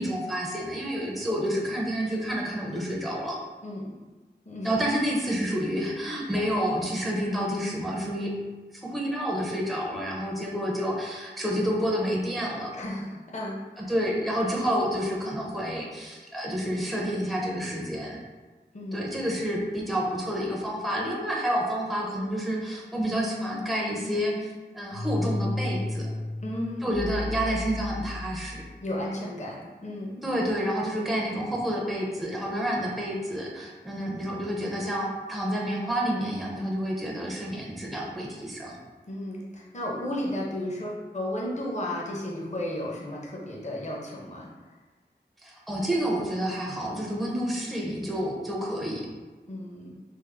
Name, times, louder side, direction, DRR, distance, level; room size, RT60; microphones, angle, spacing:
voice 1, 0.0-3.4 4.6-8.3 8.7-12.8 13.8-18.2 18.9-26.1 26.8-28.6 30.2-38.8 45.4-49.0, equal, ahead, -3 dB, 0.5 m, -29 dB
voice 2, 3.6-4.0 4.5-4.7 12.7-13.9 18.7-19.1 26.4-27.1 28.8-30.3 39.1-44.5 49.5-50.0, left 1 dB, 40° left, -3 dB, 0.6 m, -34 dB
sound 1, 20.9-28.8, left 2 dB, 85° left, 0.4 m, -35 dB
3.5 x 2.0 x 3.3 m, 1.3 s
wide cardioid pair, 45°, 18 cm